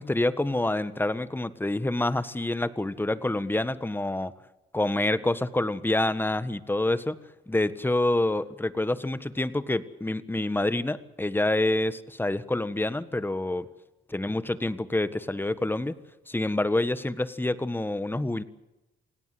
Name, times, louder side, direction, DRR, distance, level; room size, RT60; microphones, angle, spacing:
voice 1, 0.0-4.3 4.7-7.2 7.5-13.7 14.1-16.0 16.3-18.4, left 2 dB, 10° left, 14 dB, 1.6 m, -27 dB
28.0 x 18.0 x 7.8 m, 0.98 s
cardioid pair, 90°, 20 cm